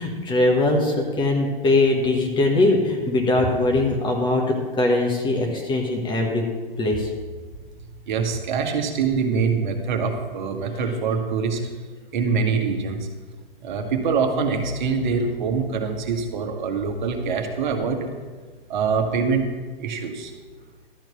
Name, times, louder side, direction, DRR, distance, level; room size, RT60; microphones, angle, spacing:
voice 1, 0.0-6.4 6.8-7.1, left 2 dB, 15° left, 1 dB, 1.2 m, -21 dB
voice 2, 8.1-11.6 12.1-13.0 13.6-18.1 18.7-19.5 19.8-20.3, right 5 dB, 55° right, 4 dB, 1.5 m, -24 dB
12.5 x 4.5 x 6.9 m, 1.4 s
figure-of-eight pair, 120°, 29 cm